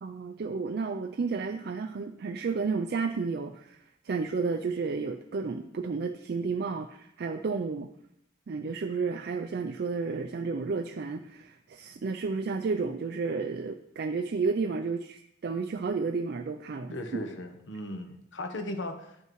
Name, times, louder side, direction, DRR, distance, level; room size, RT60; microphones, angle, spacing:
voice 1, 0.0-7.9 8.5-16.9, right 4 dB, 55° right, 6 dB, 0.4 m, -32 dB
voice 2, 16.9-19.2, left 1 dB, 70° left, 6 dB, 1.0 m, -37 dB
10.5 x 5.6 x 3.1 m, 0.78 s
head